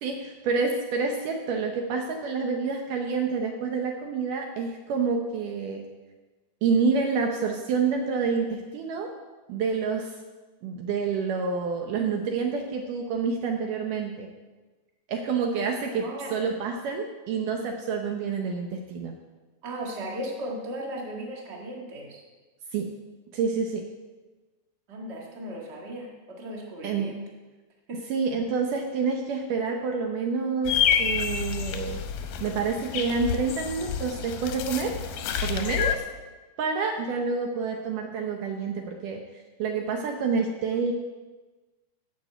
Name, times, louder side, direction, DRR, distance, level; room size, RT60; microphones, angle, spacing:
voice 1, 0.0-5.8 6.6-9.1 9.5-10.1 10.6-14.3 15.1-19.1 22.7-22.9 23.3-23.9 26.8-27.1 28.1-32.0 32.4-35.0 35.4-36.0 36.6-39.2 39.6-40.9, right 5 dB, 75° right, 3 dB, 2.1 m, -28 dB
voice 2, 16.0-16.4 19.6-22.2 24.9-27.2 27.9-28.0, right 1 dB, 35° right, -1 dB, 1.1 m, -36 dB
sound 1, 30.7-36.0, left 8 dB, 75° left, 2.1 m, -28 dB
11.0 x 5.9 x 7.8 m, 1.2 s
omnidirectional pair, 4.5 m